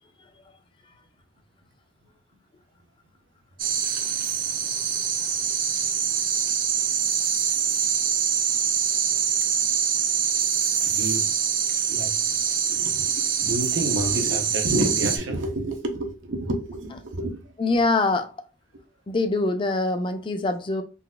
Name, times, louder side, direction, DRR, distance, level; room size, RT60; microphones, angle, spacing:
sound 1, 3.6-15.2, right 7 dB, 45° right, 0.4 m, -24 dB
voice 1, 10.8-11.3 11.9-12.3 12.7-17.5, right 1 dB, 80° right, 0.7 m, -29 dB
voice 2, 17.6-18.3 19.1-20.8, left 2 dB, 25° left, 0.4 m, -24 dB
3.8 x 2.4 x 2.3 m
head